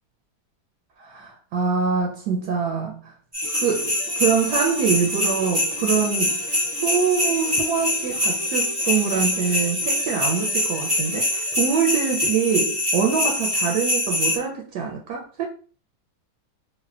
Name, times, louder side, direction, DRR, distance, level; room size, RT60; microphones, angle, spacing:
voice 1, 1.0-3.1 3.5-6.6 6.8-15.5, right 6 dB, 80° right, 1.1 m, -24 dB
sound 1, 3.3-14.4, left 1 dB, 30° right, 0.4 m, -24 dB
Guitar, 3.4-12.7, left 1 dB, 60° left, 0.4 m, -40 dB
3.2 x 2.1 x 2.4 m
omnidirectional pair, 1.8 m